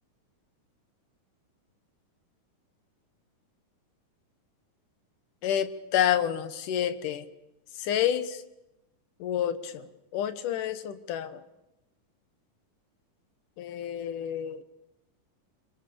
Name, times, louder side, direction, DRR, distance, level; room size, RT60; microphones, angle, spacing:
voice 1, 5.4-7.3 7.8-8.4 9.2-9.9 10.1-11.4 13.6-14.6, left 10 dB, 75° left, 12 dB, 2.7 m, -29 dB
25.5 x 24.0 x 7.0 m, 0.92 s
omnidirectional pair, 3.9 m